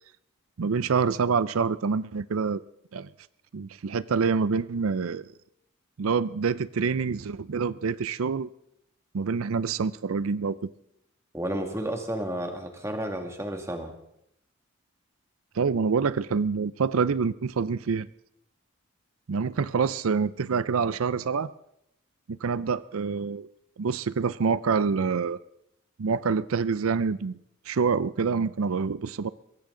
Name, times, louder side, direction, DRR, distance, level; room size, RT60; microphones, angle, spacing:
voice 1, 0.6-2.6 2.9-3.1 3.5-5.3 6.0-8.5 9.1-10.6 15.6-18.1 19.3-21.5 22.3-23.5 23.8-25.4 26.0-27.4 27.7-29.3, right 5 dB, 90° right, 17 dB, 0.5 m, -26 dB
voice 2, 11.3-13.9, right 1 dB, 15° right, 4 dB, 2.0 m, -32 dB
22.5 x 17.0 x 3.8 m, 0.77 s
head